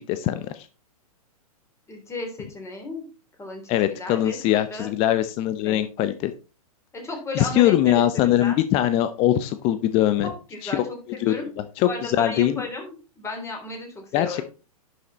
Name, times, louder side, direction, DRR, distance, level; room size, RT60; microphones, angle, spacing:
voice 1, 0.1-0.7 3.7-6.3 7.4-10.3 10.6-10.8 11.2-11.3 11.8-12.6 14.1-14.4, left 12 dB, 30° left, 12 dB, 0.7 m, -22 dB
voice 2, 1.9-3.1 3.4-4.9 5.6-6.1 6.9-8.6 10.2-11.5 11.8-14.4, left 2 dB, 15° left, 3 dB, 3.5 m, -35 dB
11.0 x 6.3 x 4.1 m, 0.34 s
figure-of-eight pair, 110°, 20 cm